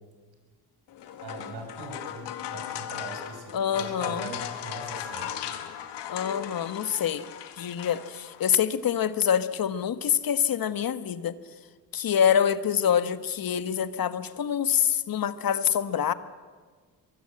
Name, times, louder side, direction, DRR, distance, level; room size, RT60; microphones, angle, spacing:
sound 1, 0.9-8.5, left 10 dB, 85° left, 2.0 m, -37 dB
voice 1, 1.2-5.3, right 3 dB, 70° right, 3 dB, 6.2 m, -41 dB
voice 2, 3.5-4.3 6.1-7.3 7.6-11.4 11.9-16.1, left 8 dB, 55° left, 12 dB, 1.4 m, -26 dB
23.5 x 22.5 x 7.8 m, 1.5 s
cardioid pair, 75°, 41 cm